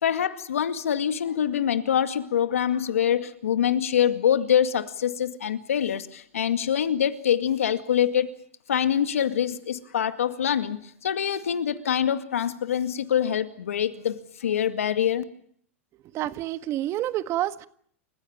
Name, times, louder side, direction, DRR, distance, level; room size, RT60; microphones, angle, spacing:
voice 1, 0.0-8.3 8.7-15.2, left 9 dB, 90° left, 10 dB, 2.1 m, -25 dB
voice 2, 16.1-17.7, right 13 dB, 40° right, 12 dB, 1.6 m, -28 dB
29.0 x 16.0 x 8.8 m, 0.63 s
hypercardioid pair, 120°, 7 cm